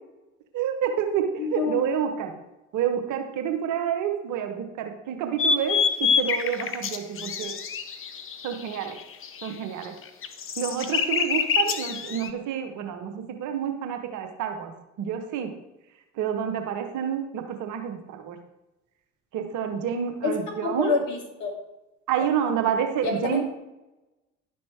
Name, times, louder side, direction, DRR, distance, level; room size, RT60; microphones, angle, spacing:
voice 1, 0.5-1.3 1.5-2.3 2.7-7.5 8.4-9.0 9.4-9.9 10.6-14.7 15.0-15.5 16.2-18.4 19.3-20.9 22.1-23.4, right 8 dB, 55° right, 6 dB, 1.3 m, -28 dB
voice 2, 1.4-1.8 20.2-21.5 23.0-23.4, left 4 dB, 55° left, 0 dB, 2.9 m, -27 dB
sound 1, 5.4-9.5 9.8-12.3, left 6 dB, 35° left, 0.9 m, -26 dB
11.0 x 5.9 x 4.8 m, 0.99 s
figure-of-eight pair, 55°, 37 cm